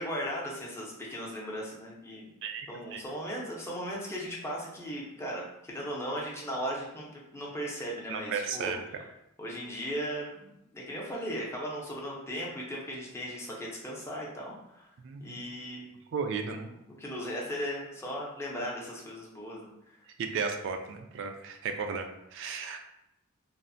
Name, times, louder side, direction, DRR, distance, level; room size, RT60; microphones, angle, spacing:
voice 1, 0.0-2.3 2.7-8.7 9.4-14.9 15.2-15.9 17.0-19.7, equal, 10° left, -4 dB, 0.5 m, -37 dB
voice 2, 2.4-3.0 8.1-8.8 15.0-15.5 16.1-16.7 20.2-22.8, right 5 dB, 60° right, 5 dB, 0.3 m, -35 dB
3.1 x 2.0 x 2.5 m, 0.82 s
head